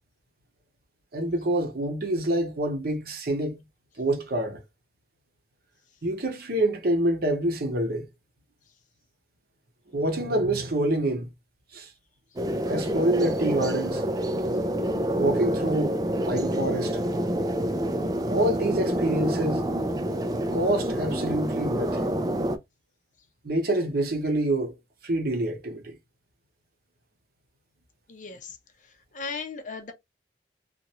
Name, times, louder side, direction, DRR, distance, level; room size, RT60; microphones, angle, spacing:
voice 1, 1.1-3.6 4.0-4.6 6.0-8.1 9.9-11.3 11.7-11.9 12.7-14.0 15.1-16.0 16.3-17.0 18.3-19.7 20.5-22.1 23.4-24.7 25.0-26.0, right 1 dB, 60° right, 0.8 m, -26 dB
sound 1, 12.4-22.6, equal, 20° right, 0.4 m, -27 dB
voice 2, 28.1-28.6 28.8-29.9, left 4 dB, 45° left, 0.7 m, -37 dB
2.9 x 2.5 x 2.9 m
head